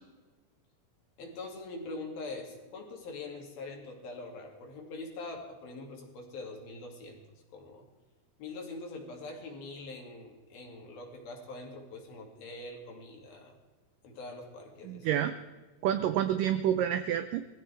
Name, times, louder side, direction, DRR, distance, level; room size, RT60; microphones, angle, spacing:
voice 1, 1.2-7.2 7.5-7.9 8.4-13.6 14.0-15.2, left 2 dB, 65° left, 1 dB, 4.2 m, -43 dB
voice 2, 14.8-15.4 15.8-17.4, right 10 dB, 85° right, 10 dB, 1.9 m, -28 dB
21.0 x 15.0 x 3.4 m, 1.3 s
omnidirectional pair, 4.6 m